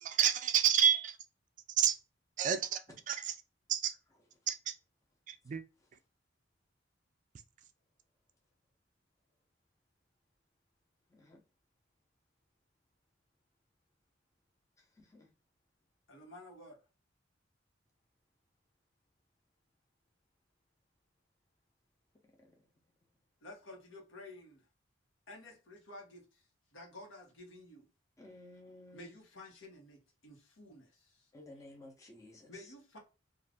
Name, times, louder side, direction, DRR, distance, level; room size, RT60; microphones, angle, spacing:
voice 1, 0.0-1.2 1.8-2.0 2.4-3.4 3.7-3.9 4.5-4.7 5.3-5.6, right 9 dB, 40° right, 0.3 m, -29 dB
voice 2, 16.1-16.8 23.4-24.7 25.3-26.4 26.7-27.9 28.9-31.3 32.5-33.0, left 1 dB, 90° left, 1.1 m, -52 dB
voice 3, 28.2-29.1 31.3-32.5, left 1 dB, 15° left, 0.6 m, -54 dB
2.5 x 2.4 x 3.3 m
head